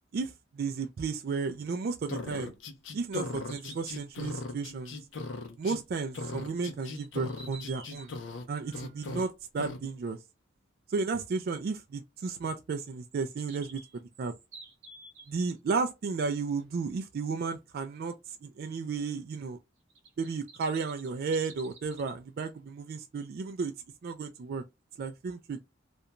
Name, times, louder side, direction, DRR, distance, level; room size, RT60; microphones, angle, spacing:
voice 1, 0.1-2.5 2.9-4.9 5.6-8.1 8.5-10.2 10.9-13.8 14.2-14.3 15.3-19.6 20.2-23.7 24.0-24.6 25.0-25.6, right 4 dB, 55° right, 0.3 m, -33 dB
sound 1, 2.1-5.8 6.1-8.4 8.7-9.2 9.6-9.8, left 2 dB, 70° left, 0.6 m, -38 dB
sound 2, 3.2-4.0 6.8-8.1 12.9-15.6 19.9-22.1, right 3 dB, 75° right, 1.0 m, -51 dB
2.5 x 2.2 x 2.8 m
head